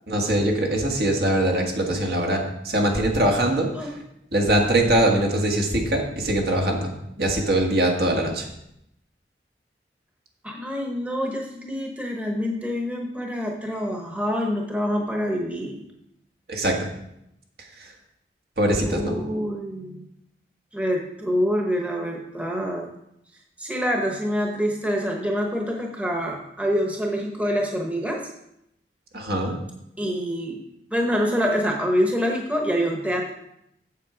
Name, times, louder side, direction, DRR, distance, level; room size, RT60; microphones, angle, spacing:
voice 1, 0.1-3.9 4.3-6.9 7.2-8.5 16.5-16.9 17.8-17.9 18.6-19.2 29.1-29.6, right 1 dB, 65° right, 1 dB, 1.7 m, -22 dB
voice 2, 10.4-15.8 18.8-20.0 20.7-22.9 23.6-28.2 30.0-30.6 30.9-33.3, equal, 10° right, 0 dB, 1.0 m, -26 dB
7.7 x 7.6 x 4.9 m, 0.80 s
head